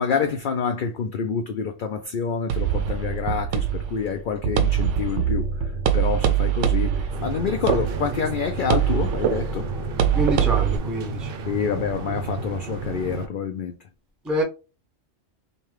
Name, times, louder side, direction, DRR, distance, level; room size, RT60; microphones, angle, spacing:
voice 1, 0.0-9.7 11.5-13.7, left 6 dB, 60° left, 0.5 m, -27 dB
sound 1, 2.5-10.8, right 9 dB, 80° right, 0.9 m, -24 dB
sound 2, 7.1-13.3, right 3 dB, 60° right, 0.7 m, -32 dB
voice 2, 10.1-11.3 14.2-14.4, right 1 dB, ahead, 0.6 m, -25 dB
5.1 x 2.3 x 3.2 m
omnidirectional pair, 1.2 m